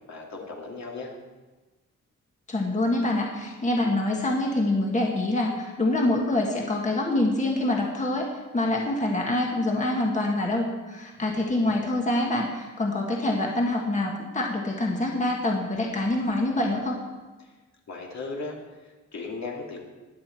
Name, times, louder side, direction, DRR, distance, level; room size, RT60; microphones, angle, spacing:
voice 1, 0.1-1.1 17.4-17.5 17.9-18.6 18.8-19.8, left 3 dB, 65° left, -1 dB, 2.4 m, -36 dB
voice 2, 2.5-17.0, left 1 dB, 25° left, 0 dB, 1.4 m, -25 dB
20.0 x 7.9 x 4.5 m, 1.2 s
wide cardioid pair, 150°, 29 cm